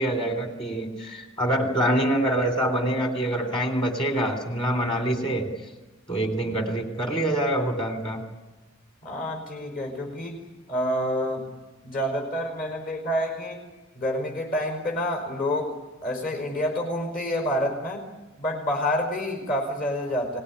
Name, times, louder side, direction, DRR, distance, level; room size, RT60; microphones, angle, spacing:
voice 1, 0.0-5.5 6.1-8.2, right 1 dB, 25° left, 5 dB, 3.3 m, -25 dB
voice 2, 9.0-11.5 11.8-18.1 18.4-20.4, equal, 45° left, 2 dB, 5.1 m, -28 dB
25.5 x 18.5 x 9.9 m, 1.2 s
head